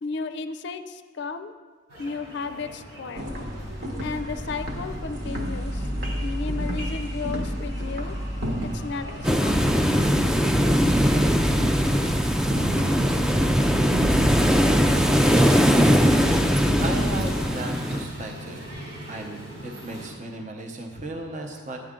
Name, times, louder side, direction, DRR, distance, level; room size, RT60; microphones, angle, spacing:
voice 1, 0.0-1.5 2.0-3.4 4.0-5.9 6.2-8.1 8.6-9.8, left 4 dB, 60° left, 10 dB, 0.5 m, -34 dB
sound 1, 1.9-20.1, equal, 90° right, 3.2 m, -41 dB
sound 2, 3.1-17.4, equal, 55° right, 1.2 m, -30 dB
sound 3, 9.2-18.0, equal, 5° right, 0.3 m, -20 dB
voice 2, 16.8-18.8 19.1-21.8, right 2 dB, 40° right, 2 dB, 0.8 m, -35 dB
11.5 x 9.3 x 3.7 m, 1.5 s
head